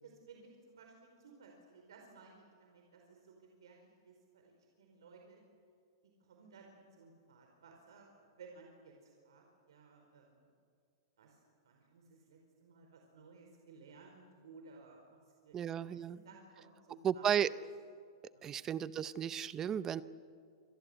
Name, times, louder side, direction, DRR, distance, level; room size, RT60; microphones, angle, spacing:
voice 1, 0.0-5.4 6.0-10.5 11.2-17.4 18.3-18.5, right 4 dB, 85° right, 2 dB, 4.7 m, -58 dB
voice 2, 15.5-16.2 17.0-17.5 18.4-20.0, right 9 dB, 20° right, 16 dB, 0.7 m, -34 dB
27.0 x 21.5 x 8.0 m, 2.3 s
supercardioid pair, 160°, 2 cm